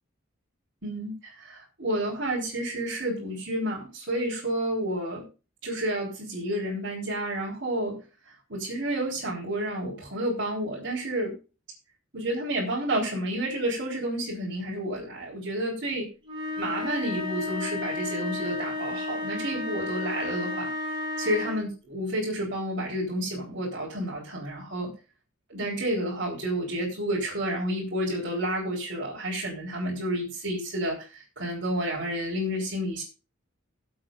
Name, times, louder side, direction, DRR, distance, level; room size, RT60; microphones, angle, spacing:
voice 1, 0.8-5.3 5.6-11.4 12.1-16.0 16.6-20.7 21.2-24.9 25.5-33.0, right 1 dB, 55° right, -6 dB, 3.9 m, -30 dB
sound 1, 16.2-21.7, left 3 dB, 25° right, 3.9 m, -32 dB
21.0 x 7.7 x 2.5 m, 0.32 s
head